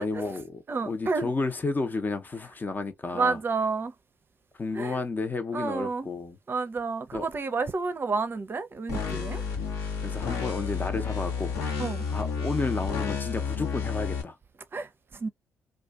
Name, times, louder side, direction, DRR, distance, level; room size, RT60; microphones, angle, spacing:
voice 1, 0.0-3.4 4.6-6.4 7.1-7.3 10.0-11.5 12.1-14.3, left 3 dB, 30° left, 0.7 m, -31 dB
voice 2, 0.7-1.3 3.1-3.9 4.7-5.0 5.5-6.1 6.5-9.4 11.8-12.0 14.7-15.3, right 4 dB, 40° right, 0.6 m, -30 dB
sound 1, 8.9-14.2, left 6 dB, 75° left, 0.9 m, -31 dB
2.5 x 2.2 x 2.3 m
hypercardioid pair, 45°, 6 cm